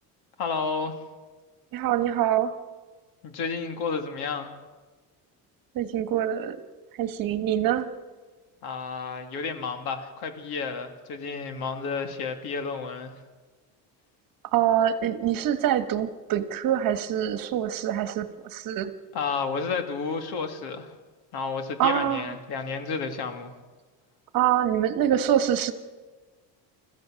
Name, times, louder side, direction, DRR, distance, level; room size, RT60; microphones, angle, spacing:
voice 1, 0.4-0.9 3.2-4.5 8.6-13.1 19.1-20.9 21.3-23.5, left 5 dB, 65° left, 6 dB, 2.7 m, -31 dB
voice 2, 1.7-2.5 5.7-6.6 7.0-7.9 14.5-18.3 18.5-18.9 21.8-22.2 24.3-25.7, right 10 dB, 55° right, 10 dB, 1.5 m, -25 dB
29.5 x 14.5 x 6.5 m, 1.3 s
cardioid pair, 145°, 41 cm